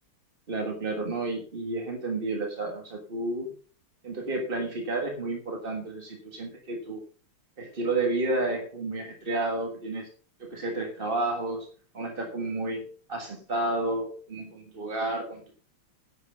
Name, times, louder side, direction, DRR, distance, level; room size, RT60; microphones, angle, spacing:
voice 1, 0.5-3.5 4.0-7.0 7.6-10.1 10.4-11.7 11.9-15.6, right 2 dB, 30° right, 2 dB, 1.5 m, -31 dB
11.0 x 8.7 x 5.5 m, 0.39 s
omnidirectional pair, 2.4 m